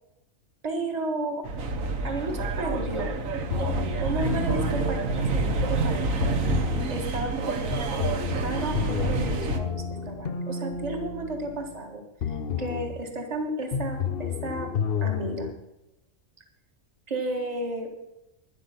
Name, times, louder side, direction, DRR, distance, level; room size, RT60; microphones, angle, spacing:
voice 1, 0.6-1.5 2.0-3.2 3.6-3.7 4.0-6.2 6.9-14.7 15.0-15.5 17.1-17.9, right 2 dB, 30° right, 3 dB, 1.7 m, -33 dB
sound 1, 1.4-9.6, right 3 dB, 70° right, 1.5 m, -28 dB
sound 2, 3.5-5.8 6.2-7.0 7.7-11.8 12.2-13.0 13.7-15.5, left 6 dB, 50° left, 0.9 m, -31 dB
12.5 x 10.5 x 5.6 m, 0.94 s
omnidirectional pair, 1.5 m